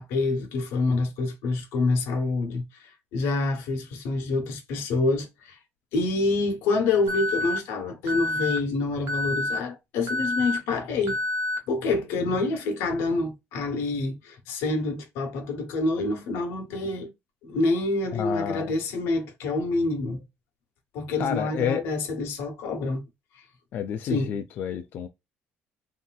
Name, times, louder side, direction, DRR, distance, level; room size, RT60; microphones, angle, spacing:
voice 1, 0.0-5.6 5.9-11.2 11.7-17.1 17.4-20.2 20.9-23.0 24.1-24.3, left 3 dB, 85° left, 1.0 m, -27 dB
Alarm, 7.1-7.6 8.1-8.6 9.1-9.6 10.1-10.6 11.1-11.6, left 2 dB, 70° right, 0.9 m, -28 dB
voice 2, 18.1-18.7 21.2-21.8 23.7-25.1, left 8 dB, 50° left, 0.3 m, -29 dB
3.2 x 2.7 x 2.3 m
cardioid pair, 140°, 4 cm